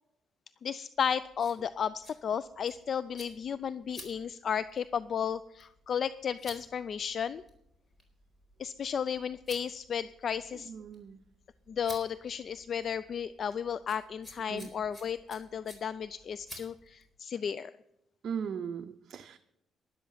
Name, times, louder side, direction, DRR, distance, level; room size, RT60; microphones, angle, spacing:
voice 1, 0.6-7.4 8.6-10.7 11.7-17.7, left 7 dB, 55° left, 16 dB, 0.4 m, -34 dB
sound 1, 1.0-17.1, left 1 dB, 25° left, 4.3 m, -54 dB
voice 2, 10.7-11.2 14.5-14.7 18.2-19.4, right 7 dB, 60° right, 7 dB, 0.6 m, -38 dB
12.0 x 11.5 x 5.7 m, 0.84 s
cardioid pair, 90°, 0 cm